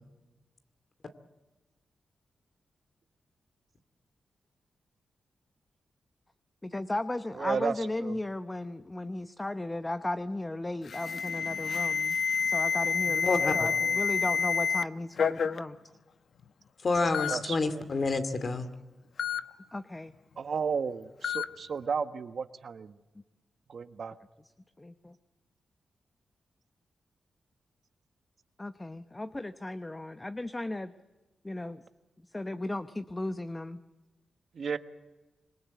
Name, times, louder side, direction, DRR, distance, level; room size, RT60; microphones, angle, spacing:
voice 1, 6.6-15.8 19.7-20.1 24.8-25.1 28.6-30.9 31.4-31.8 32.3-33.8, left 2 dB, 20° left, 11 dB, 0.9 m, -35 dB
voice 2, 7.4-8.2 13.8-14.0 17.3-17.8 20.4-22.9 23.7-24.1 34.5-34.8, right 6 dB, 60° right, 10 dB, 1.3 m, -33 dB
Alarm, 10.9-14.8 15.2-15.6 16.4-16.5 17.1-17.4 19.2-19.4 21.2-21.5, left 6 dB, 70° left, 0.9 m, -28 dB
voice 3, 13.3-13.7 16.8-18.7, left 3 dB, 50° left, 10 dB, 2.4 m, -28 dB
26.0 x 21.5 x 8.2 m, 1.1 s
cardioid pair, 80°, 0 cm